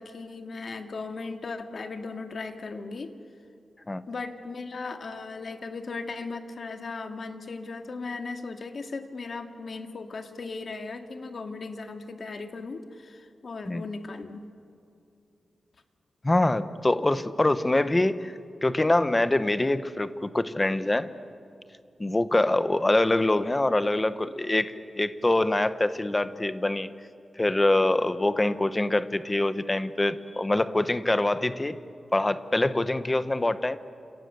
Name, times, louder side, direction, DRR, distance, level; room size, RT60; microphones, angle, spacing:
voice 1, 0.0-3.1 4.1-14.4, left 3 dB, 50° left, 5 dB, 2.0 m, -37 dB
voice 2, 16.2-18.3 18.6-21.1 22.0-26.9 27.4-31.8 32.1-33.8, left 2 dB, 15° left, 12 dB, 1.0 m, -24 dB
30.0 x 28.0 x 6.9 m, 2.6 s
wide cardioid pair, 150°, 0 cm